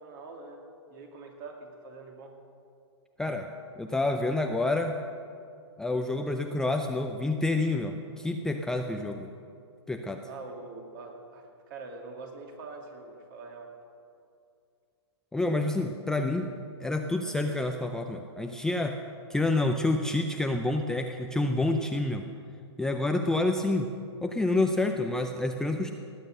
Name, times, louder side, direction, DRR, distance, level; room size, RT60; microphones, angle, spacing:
voice 1, 0.0-2.4 10.3-13.7, right 3 dB, 45° right, 2 dB, 2.6 m, -44 dB
voice 2, 3.8-5.0 5.8-9.3 9.9-10.2 15.3-16.5 16.8-19.0 19.3-22.3 22.8-23.9 24.2-25.9, left 2 dB, 5° left, 4 dB, 0.5 m, -28 dB
18.5 x 9.0 x 6.6 m, 2.4 s
hypercardioid pair, 140°, 15 cm